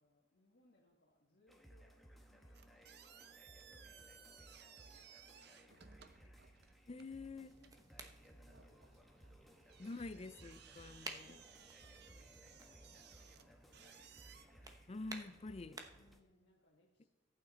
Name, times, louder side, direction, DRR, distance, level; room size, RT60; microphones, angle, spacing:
voice 1, 0.0-2.0 2.3-5.9 7.6-9.3 10.5-10.6 11.1-14.6 15.9-17.1, left 1 dB, 65° left, 1.7 m, -73 dB
sound 1, 1.5-16.2, right 1 dB, ahead, 1.1 m, -62 dB
sound 2, 2.5-14.4, right 8 dB, 60° right, 0.7 m, -61 dB
voice 2, 6.9-7.6 9.8-11.4 14.9-15.8, left 3 dB, 35° left, 0.5 m, -47 dB
sound 3, 6.9-16.2, right 2 dB, 20° right, 1.0 m, -56 dB
13.5 x 8.9 x 4.2 m
head